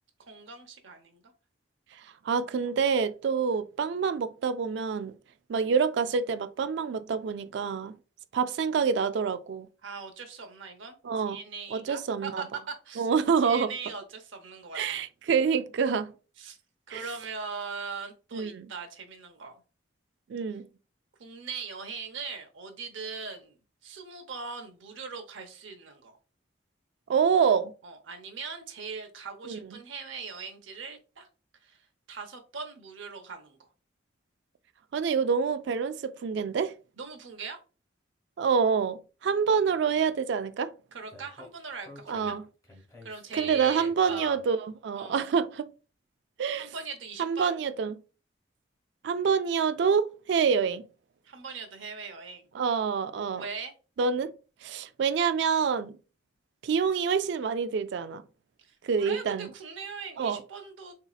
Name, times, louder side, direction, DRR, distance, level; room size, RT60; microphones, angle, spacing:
voice 1, 0.3-1.2 9.8-11.0 11.2-13.1 13.4-14.8 16.4-16.6 16.9-19.5 21.2-23.6 23.8-26.2 27.8-31.3 31.6-31.8 32.1-33.7 37.0-37.6 40.9-42.4 43.0-44.4 44.9-45.2 46.6-47.5 51.2-52.4 53.4-53.7 58.6-60.9, right 5 dB, 80° right, 0.7 m, -40 dB
voice 2, 2.2-5.1 5.5-8.0 8.3-9.7 11.0-11.4 11.7-12.4 13.0-13.7 14.7-16.1 16.9-17.0 18.3-18.7 20.3-20.7 27.1-27.7 29.4-29.6 34.9-36.7 38.4-40.7 42.1-42.4 43.4-44.6 44.8-45.7 46.4-46.7 47.2-47.9 49.0-50.9 52.5-53.4 54.0-54.3 54.6-56.0 56.6-58.2 58.8-59.5 60.2-60.4, right 6 dB, 65° right, 0.3 m, -27 dB
Speech, 41.1-44.5, left 1 dB, 20° left, 0.9 m, -51 dB
4.0 x 2.8 x 2.3 m
head